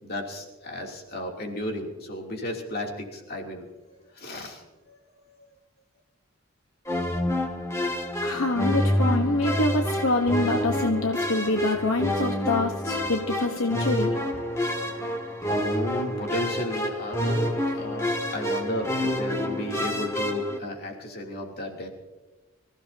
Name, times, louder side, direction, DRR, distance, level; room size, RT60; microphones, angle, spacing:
voice 1, 0.0-3.7 4.1-5.4 15.4-21.9, left 1 dB, 45° left, 1 dB, 3.1 m, -33 dB
sound 1, 6.8-20.6, equal, 15° left, 2.0 m, -28 dB
voice 2, 8.2-14.1, left 2 dB, 75° left, 4 dB, 1.2 m, -25 dB
26.0 x 16.0 x 2.9 m, 1.2 s
head